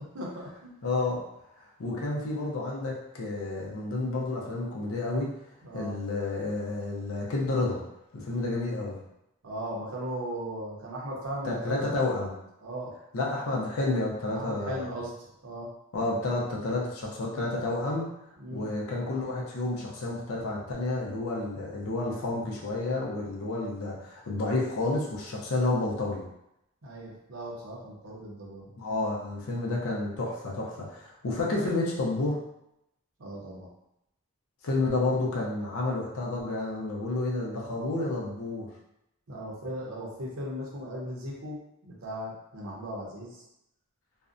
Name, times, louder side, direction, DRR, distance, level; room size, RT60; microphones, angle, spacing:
voice 1, 0.1-0.7 5.6-5.9 9.4-11.8 12.1-12.3 12.6-12.9 14.3-15.1 15.4-15.7 18.4-18.7 26.8-28.7 33.2-33.7 39.3-41.6 41.8-43.4, equal, 75° right, -3 dB, 0.7 m, -37 dB
voice 2, 0.8-1.2 1.6-5.3 5.7-7.8 8.1-9.0 11.4-12.3 13.1-14.9 15.9-18.1 18.5-26.2 28.7-32.4 34.6-38.7, left 2 dB, 75° left, -3 dB, 0.5 m, -30 dB
2.5 x 2.1 x 2.5 m, 0.83 s
head